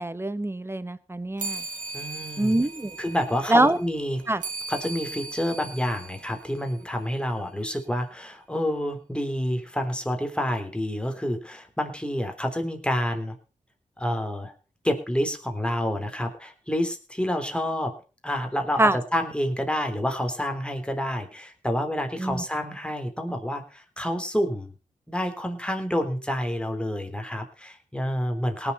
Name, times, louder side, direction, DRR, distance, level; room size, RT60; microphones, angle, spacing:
voice 1, 0.0-1.6 2.4-3.0 3.5-3.8 4.3-4.4 18.8-19.0 22.2-22.4, right 1 dB, 15° right, 15 dB, 1.3 m, -24 dB
sound 1, 1.4-7.2, right 3 dB, 70° right, 1.7 m, -38 dB
voice 2, 1.9-2.6 3.0-4.2 4.7-13.3 14.0-14.5 14.8-18.0 18.2-24.7 25.1-28.7, equal, 5° left, 5 dB, 3.5 m, -28 dB
18.5 x 7.1 x 5.5 m, 0.35 s
cardioid pair, 45°, 14 cm